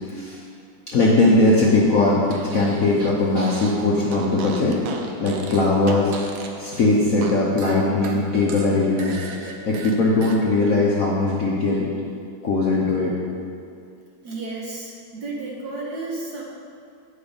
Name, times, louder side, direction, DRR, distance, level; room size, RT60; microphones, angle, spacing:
voice 1, 0.1-0.4 0.9-4.8 5.2-6.1 6.6-9.2 9.7-11.9 12.4-13.1, left 2 dB, 55° left, -5 dB, 0.9 m, -20 dB
Fart, 2.2-3.8 4.1-7.3 7.6-10.4, right 4 dB, 80° right, 0.7 m, -36 dB
voice 2, 14.2-16.4, right 3 dB, 60° right, -3 dB, 1.2 m, -32 dB
8.6 x 5.1 x 5.1 m, 2.3 s
omnidirectional pair, 2.4 m